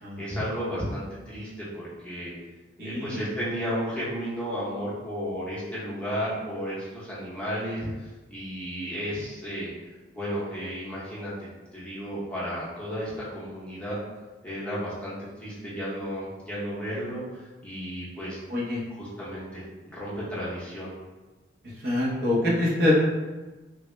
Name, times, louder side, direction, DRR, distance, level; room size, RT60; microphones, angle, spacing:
voice 1, 0.2-2.3 2.8-9.7 10.1-14.0 14.4-15.1 15.4-18.4 18.6-20.9, equal, 5° left, -9 dB, 0.7 m, -33 dB
voice 2, 2.8-3.2 18.5-18.8 21.8-22.9, left 1 dB, 55° right, -6 dB, 0.8 m, -25 dB
3.5 x 2.1 x 3.1 m, 1.2 s
head